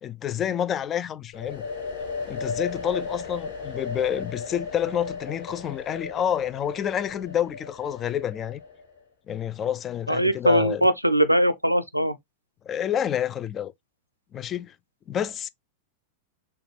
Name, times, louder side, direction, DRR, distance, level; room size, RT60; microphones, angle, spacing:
voice 1, 0.0-1.7 2.3-8.6 9.3-10.9 12.7-13.7 14.3-14.7 15.1-15.5, left 9 dB, 25° left, 0.3 m, -28 dB
sound 1, 1.3-9.0, left 4 dB, 55° left, 2.4 m, -35 dB
voice 2, 10.1-12.2, equal, 90° right, 0.5 m, -21 dB
6.8 x 2.3 x 3.2 m
figure-of-eight pair, 90°, 0 cm